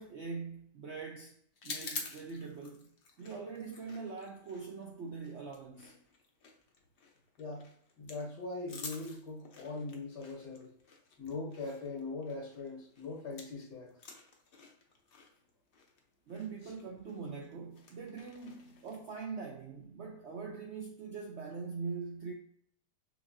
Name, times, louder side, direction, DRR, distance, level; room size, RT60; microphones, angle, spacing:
voice 1, 0.0-1.3 1.6-2.9 3.2-5.9 16.3-22.3, right 5 dB, 75° right, 0.6 m, -42 dB
sound 1, 1.6-13.6 13.9-19.2, left 4 dB, 55° left, 0.6 m, -49 dB
voice 2, 7.4-7.7 8.0-10.7 11.2-13.9 16.6-16.7, left 3 dB, 85° left, 2.1 m, -41 dB
6.0 x 2.6 x 2.6 m
omnidirectional pair, 1.8 m